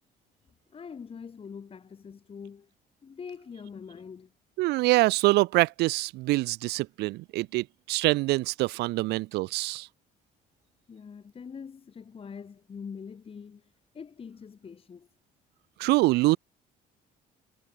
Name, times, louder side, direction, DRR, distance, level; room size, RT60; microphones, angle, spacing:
voice 1, 0.7-2.7 3.0-4.3 10.9-15.1, left 6 dB, 35° left, 2.5 m, -44 dB
voice 2, 4.6-9.9 15.8-16.4, right 20 dB, 80° right, 0.4 m, -25 dB
cardioid pair, 110°, 17 cm